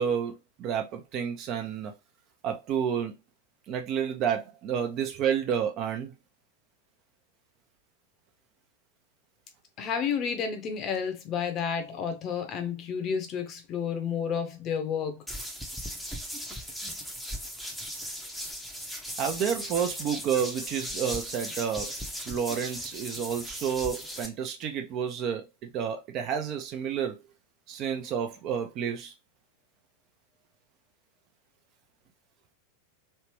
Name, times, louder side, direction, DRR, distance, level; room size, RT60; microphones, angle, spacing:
voice 1, 0.0-1.9 2.4-3.1 3.7-6.1 19.2-22.0 22.3-27.2 27.7-29.1, right 8 dB, 35° right, 0.6 m, -30 dB
voice 2, 9.8-15.2, left 7 dB, 35° left, 0.8 m, -31 dB
sound 1, 15.3-24.3, equal, ahead, 0.8 m, -37 dB
3.3 x 2.9 x 3.0 m
figure-of-eight pair, 90°, 0 cm